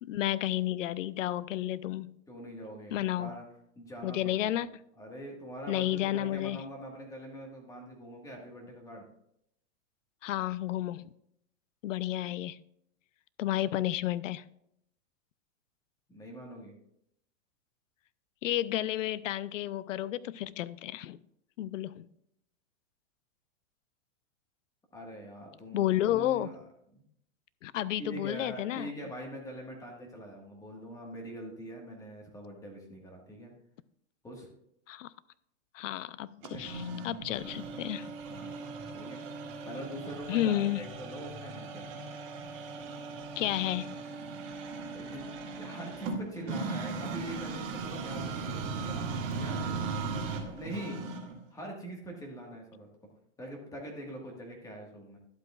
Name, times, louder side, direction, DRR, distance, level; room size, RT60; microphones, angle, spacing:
voice 1, 0.0-2.1 2.9-3.3 4.0-4.8 5.7-6.6 10.2-11.1 11.8-12.6 13.4-14.4 18.4-21.2 21.6-22.1 25.7-26.5 27.6-28.9 34.9-35.1 35.7-38.1 40.3-40.8 43.4-43.9, left 13 dB, 75° left, 18 dB, 0.6 m, -31 dB
voice 2, 2.3-3.4 3.7-4.6 5.0-9.1 16.1-16.7 24.9-26.6 26.9-27.0 28.0-33.5 34.2-34.5 36.4-36.7 37.4-37.6 38.3-38.6 38.9-39.2 39.6-41.9 44.8-50.2 50.5-51.0 51.5-52.9 53.4-55.2, right 1 dB, 10° left, 0 dB, 1.5 m, -43 dB
sound 1, 36.4-51.4, right 4 dB, 45° right, 2.1 m, -38 dB
11.5 x 8.0 x 2.4 m, 0.75 s
hypercardioid pair, 145°, 39 cm